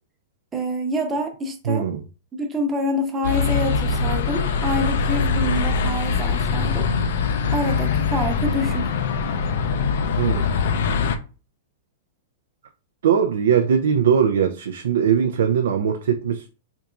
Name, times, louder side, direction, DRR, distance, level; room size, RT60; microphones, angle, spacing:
voice 1, 0.5-1.9 2.3-6.9 7.5-8.9, equal, 20° right, 0.8 m, -26 dB
voice 2, 1.7-2.0 10.2-10.5 13.0-16.5, right 7 dB, 80° right, 0.4 m, -20 dB
sound 1, 3.2-11.2, left 5 dB, 70° left, 0.4 m, -22 dB
3.4 x 2.9 x 2.4 m
hypercardioid pair, 125°, 0 cm